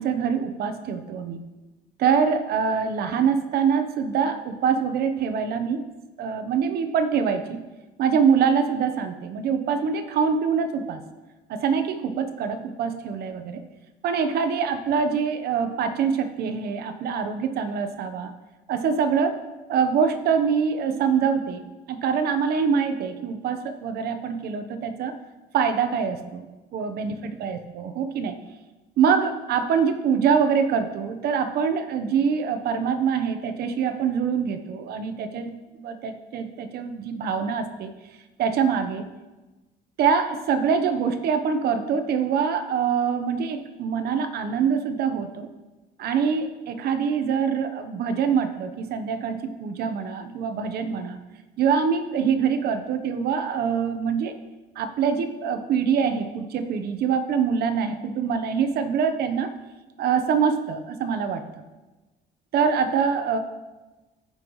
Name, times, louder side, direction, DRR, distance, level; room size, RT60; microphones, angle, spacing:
voice 1, 0.0-1.4 2.0-5.9 6.2-7.6 8.0-11.0 11.5-13.6 14.0-18.3 18.7-19.4 19.7-21.6 21.9-25.1 25.5-26.5 26.7-28.4 29.0-37.9 38.4-39.0 40.0-45.5 46.0-51.2 51.6-54.3 54.8-59.5 60.0-61.4 62.5-63.4, right 6 dB, 70° right, 8 dB, 0.9 m, -24 dB
15.0 x 5.6 x 3.1 m, 1.1 s
cardioid pair, 110°, 17 cm